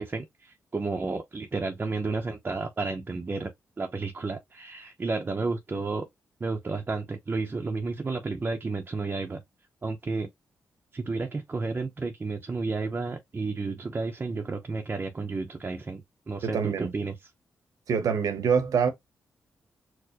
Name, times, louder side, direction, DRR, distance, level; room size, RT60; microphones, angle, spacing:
voice 1, 0.0-3.5 3.8-6.1 6.4-9.4 9.8-10.3 10.9-17.2, right 3 dB, 30° right, 0.6 m, -32 dB
voice 2, 16.4-16.9 17.9-18.9, right 6 dB, 75° right, 0.8 m, -25 dB
4.4 x 2.1 x 2.8 m
cardioid pair, 75°, 6 cm